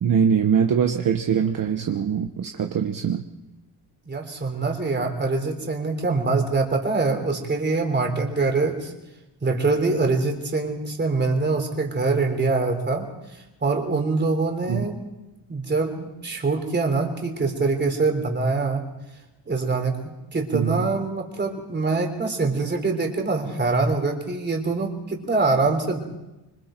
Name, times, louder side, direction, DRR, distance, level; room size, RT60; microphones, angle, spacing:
voice 1, 0.0-3.2 14.7-14.9 20.5-20.8, right 7 dB, 55° right, 5 dB, 1.2 m, -22 dB
voice 2, 4.1-8.9 9.4-15.0 15.5-18.8 19.5-20.0 20.3-26.0, right 3 dB, 25° right, 4 dB, 3.5 m, -24 dB
26.0 x 25.5 x 4.5 m, 0.99 s
wide cardioid pair, 165°, 41 cm